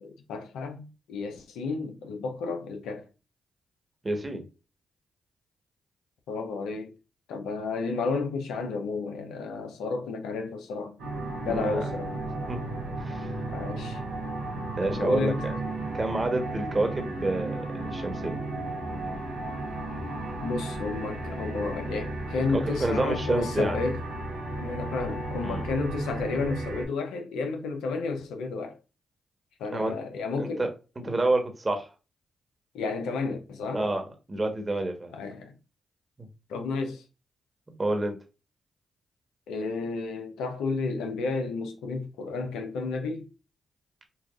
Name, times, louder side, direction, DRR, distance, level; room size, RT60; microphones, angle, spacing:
voice 1, 0.0-3.0 6.3-6.9 7.3-11.0 11.4-12.1 13.5-14.0 14.8-15.4 20.4-24.0 24.6-28.8 29.6-30.6 32.7-33.8 35.1-35.5 36.5-37.0 39.5-43.3, left 4 dB, 85° left, 0.7 m, -32 dB
voice 2, 4.0-4.4 11.4-11.9 12.5-12.6 13.0-13.3 14.8-15.6 15.9-18.4 22.5-23.8 25.4-25.7 29.7-29.9 30.4-30.7 31.0-31.9 33.7-35.1 36.2-36.3 37.8-38.2, right 2 dB, 35° right, 1.2 m, -28 dB
sound 1, 11.0-26.8, right 2 dB, 90° right, 1.2 m, -34 dB
5.6 x 2.4 x 2.4 m
hypercardioid pair, 40°, 0 cm